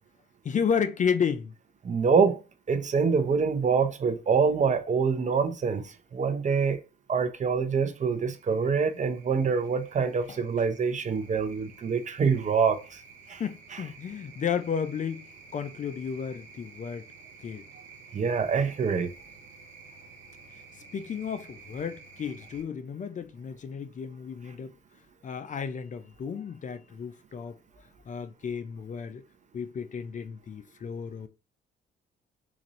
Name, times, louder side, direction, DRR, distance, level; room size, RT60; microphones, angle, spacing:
voice 1, 0.4-1.5 10.3-10.4 13.4-17.1 17.4-17.6 20.9-24.8 25.2-27.6 28.1-29.2 29.5-31.3, left 7 dB, 40° left, 0.5 m, -32 dB
voice 2, 1.8-2.4 2.7-6.8 7.1-13.0 13.3-13.4 13.7-13.8 18.1-19.1, right 5 dB, 40° right, 0.7 m, -25 dB
sound 1, 7.7-22.6, right 4 dB, 80° right, 1.2 m, -51 dB
4.0 x 2.5 x 2.9 m
cardioid pair, 90°, 20 cm